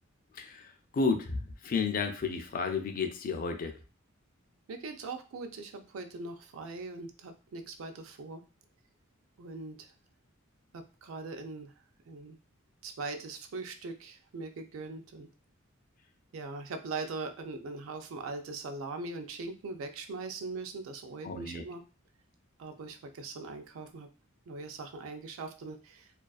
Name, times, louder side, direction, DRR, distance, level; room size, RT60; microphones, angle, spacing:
voice 1, 0.3-0.7 0.9-3.8 21.2-21.6, left 4 dB, 40° left, 6 dB, 0.3 m, -32 dB
voice 2, 4.7-8.4 9.4-9.8 10.7-11.7 12.1-12.4 12.8-15.3 16.3-21.8 22.6-24.1 24.5-26.1, right 3 dB, 70° right, 7 dB, 0.4 m, -41 dB
2.3 x 2.3 x 2.3 m, 0.34 s
head